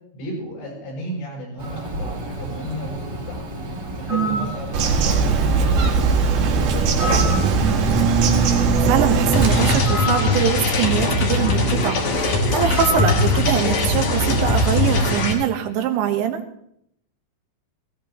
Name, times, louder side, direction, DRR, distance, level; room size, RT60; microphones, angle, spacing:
voice 1, 0.1-3.4 4.0-7.7, equal, 75° left, -3 dB, 9.0 m, -34 dB
Bird, 1.6-15.1, equal, 35° right, 1.8 m, -30 dB
voice 2, 4.1-4.5 8.4-16.4, right 9 dB, 80° right, 6 dB, 3.4 m, -23 dB
Bird vocalization bird call bird song, 4.7-9.8, right 4 dB, 65° right, 3.2 m, -19 dB
sound 1, 9.3-15.3, left 2 dB, 50° left, 3.2 m, -20 dB
19.0 x 16.5 x 3.0 m, 0.72 s
omnidirectional pair, 5.2 m